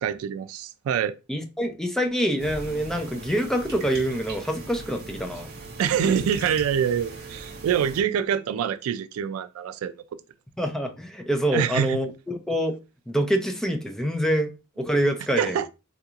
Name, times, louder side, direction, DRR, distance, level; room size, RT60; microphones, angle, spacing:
voice 1, 0.0-1.1 5.8-9.9 11.5-12.0 15.4-15.7, right 8 dB, 80° right, 0.3 m, -25 dB
voice 2, 1.3-5.5 10.6-12.8 13.1-15.6, equal, ahead, 0.4 m, -26 dB
sound 1, 2.4-8.0, right 3 dB, 50° right, 0.8 m, -39 dB
3.7 x 2.9 x 2.3 m
head